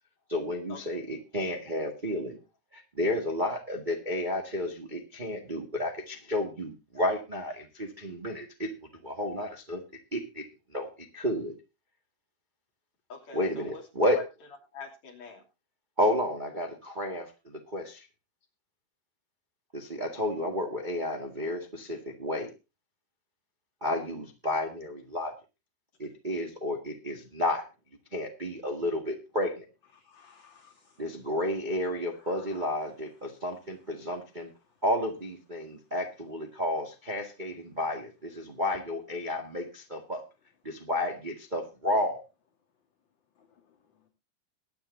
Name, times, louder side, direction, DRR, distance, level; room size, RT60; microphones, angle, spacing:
voice 1, 0.3-2.4 2.7-8.7 9.0-9.8 10.1-10.4 10.7-11.5 13.3-14.2 16.0-18.0 19.7-22.5 23.8-25.3 26.0-27.6 28.1-29.6 31.0-34.5 34.8-40.2 40.6-42.2, left 1 dB, 20° right, 2 dB, 1.4 m, -31 dB
voice 2, 13.1-13.9 14.1-14.2 14.7-15.4 43.9-44.1, left 5 dB, 55° left, 1 dB, 4.1 m, -44 dB
voice 3, 29.9-31.1 32.1-32.9 33.2-33.4 34.6-34.8 35.6-35.7 43.4-44.0, left 7 dB, 40° left, 3 dB, 2.2 m, -58 dB
22.0 x 9.7 x 2.7 m, 0.28 s
omnidirectional pair, 3.7 m